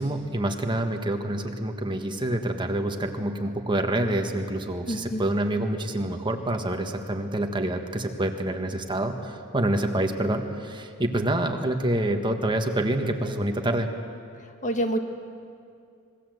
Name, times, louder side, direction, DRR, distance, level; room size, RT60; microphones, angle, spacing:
voice 1, 0.0-13.9, right 1 dB, 20° right, 4 dB, 1.5 m, -27 dB
voice 2, 4.9-5.2 14.6-15.0, equal, 35° left, 5 dB, 1.6 m, -27 dB
26.5 x 21.0 x 8.0 m, 2.4 s
head